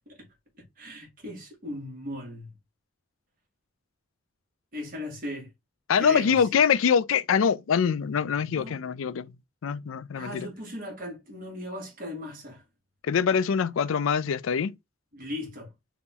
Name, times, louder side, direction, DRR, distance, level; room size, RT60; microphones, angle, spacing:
voice 1, 0.6-2.5 4.7-5.5 6.0-6.5 8.6-8.8 10.1-12.6 15.1-15.7, left 1 dB, 40° right, 2.2 m, -38 dB
voice 2, 5.9-9.3 9.6-10.5 13.0-14.7, left 6 dB, 85° left, 0.4 m, -24 dB
4.1 x 3.0 x 3.7 m
head